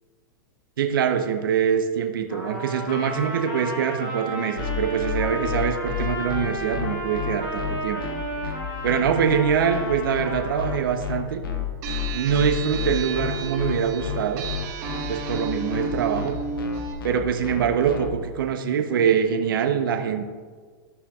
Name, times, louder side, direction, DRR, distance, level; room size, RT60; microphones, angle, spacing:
voice 1, 0.8-8.0 8.8-11.4 12.1-14.5 15.1-16.4 17.0-20.3, right 7 dB, 75° right, 6 dB, 0.9 m, -24 dB
Trumpet, 2.3-10.8, right 1 dB, 45° left, 2.5 m, -33 dB
sound 1, 4.6-18.1, left 7 dB, 85° left, 1.3 m, -31 dB
sound 2, 11.8-16.9, right 5 dB, 55° right, 1.3 m, -33 dB
14.0 x 5.6 x 2.4 m, 1.5 s
hypercardioid pair, 120°, 11 cm